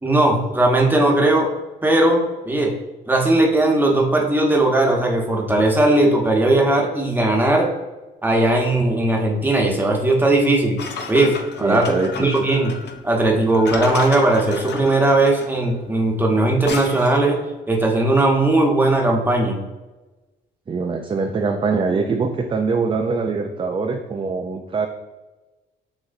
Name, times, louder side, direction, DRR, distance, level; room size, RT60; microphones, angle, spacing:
voice 1, 0.0-1.5 1.8-2.7 3.1-7.7 8.2-10.8 11.1-12.7 13.0-17.4 17.7-19.6, right 2 dB, 10° right, 0 dB, 1.0 m, -18 dB
sound 1, 10.8-17.3, left 5 dB, 60° left, 0.6 m, -33 dB
voice 2, 11.6-12.5 20.7-24.9, right 4 dB, 25° right, 3 dB, 0.4 m, -23 dB
6.2 x 3.0 x 2.6 m, 1.1 s
cardioid pair, 90°, 20 cm